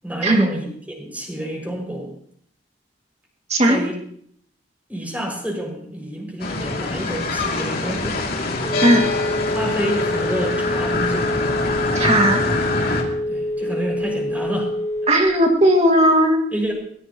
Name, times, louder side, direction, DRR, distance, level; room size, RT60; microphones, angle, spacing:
voice 1, 0.0-2.1 3.6-4.0 4.9-8.2 9.5-11.3 13.3-14.7 16.5-16.7, right 1 dB, 10° right, 0 dB, 6.0 m, -28 dB
sound 1, 6.4-13.0, left 3 dB, 55° left, 2.7 m, -24 dB
Telephone, 8.1-15.4, left 1 dB, 15° left, 2.2 m, -26 dB
voice 2, 11.9-12.4 15.1-16.4, right 1 dB, 35° right, 1 dB, 2.3 m, -16 dB
22.5 x 20.0 x 3.0 m, 0.66 s
head